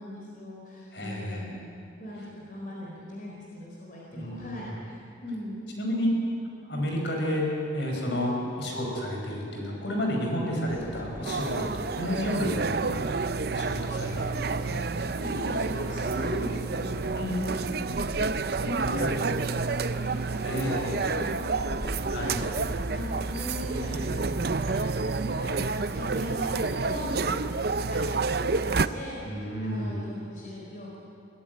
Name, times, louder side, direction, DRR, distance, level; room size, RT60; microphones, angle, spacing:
voice 1, 0.0-1.6 2.0-5.6 7.9-8.2 14.6-14.8 15.2-18.1 18.5-24.8 25.1-31.0, left 1 dB, 45° left, -3 dB, 4.0 m, -39 dB
voice 2, 0.9-1.5 4.1-4.6 5.8-6.1 6.6-7.5 7.7-14.8 17.1-17.3 18.9-19.1 20.4-21.0 22.1-22.4 29.1-30.0, left 1 dB, 65° left, 0 dB, 5.1 m, -31 dB
sound 1, 10.7-28.0, equal, 10° right, 1.8 m, -43 dB
sound 2, 11.2-28.9, right 4 dB, 55° right, 0.6 m, -29 dB
22.5 x 15.5 x 9.4 m, 2.5 s
head